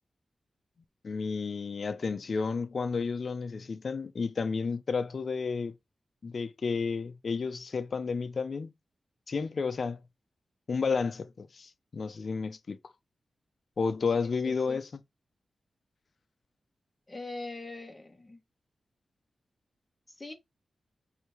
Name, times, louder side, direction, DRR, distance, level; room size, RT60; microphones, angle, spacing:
voice 1, 1.0-5.8 6.2-8.7 9.3-10.0 10.7-12.8 13.8-15.0, left 5 dB, 50° left, 0.6 m, -31 dB
voice 2, 14.2-14.8 17.1-18.4 20.2-20.3, left 2 dB, 15° left, 1.1 m, -42 dB
4.7 x 2.8 x 3.4 m
wide cardioid pair, 155°, 0 cm